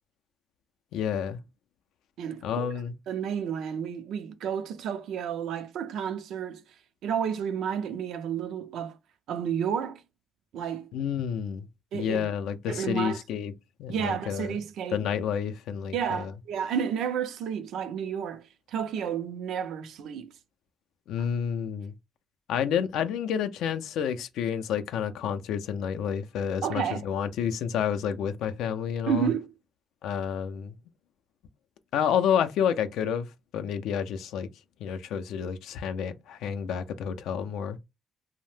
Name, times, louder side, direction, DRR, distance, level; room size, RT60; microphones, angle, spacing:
voice 1, 0.9-1.4 2.4-2.9 10.9-11.7 11.9-13.5 13.8-14.6 14.9-16.3 21.1-21.9 22.5-29.3 30.0-30.7 31.9-33.3 33.5-34.5 34.8-37.8, left 8 dB, 85° left, 0.3 m, -29 dB
voice 2, 2.2-2.7 3.1-6.6 7.0-9.0 9.3-10.0 10.5-10.9 11.9-12.3 12.7-13.2 13.9-15.0 15.9-20.3 26.6-27.1 29.1-29.5, right 8 dB, 80° right, 0.4 m, -31 dB
2.6 x 2.0 x 3.2 m
cardioid pair, 90°, 0 cm